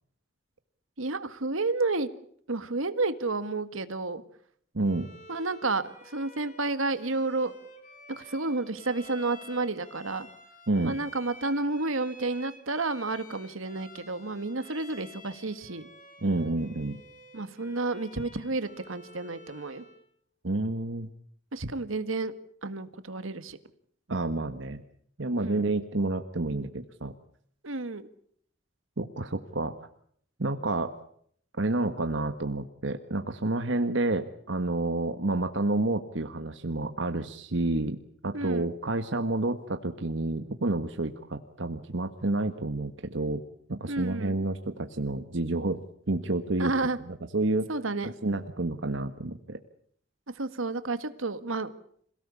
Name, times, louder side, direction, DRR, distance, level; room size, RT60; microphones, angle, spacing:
voice 1, 1.0-2.1 2.5-4.2 5.3-7.5 8.1-10.3 10.8-15.9 17.3-19.8 21.5-22.3 22.6-23.6 25.4-25.6 27.6-28.1 38.3-38.7 43.9-44.5 46.6-47.0 47.7-48.1 50.4-51.7, right 3 dB, 90° right, 11 dB, 1.8 m, -31 dB
voice 2, 4.7-5.1 10.7-10.9 16.2-17.0 20.4-21.1 24.1-24.8 25.2-27.1 29.0-29.7 30.4-30.9 31.6-38.0 38.2-43.4 43.7-45.8 46.1-46.7 47.0-47.7 48.2-49.6, right 2 dB, 65° right, 8 dB, 1.4 m, -29 dB
Bowed string instrument, 4.8-20.1, left 2 dB, 40° left, 5.6 m, -51 dB
27.0 x 17.5 x 8.4 m, 0.64 s
head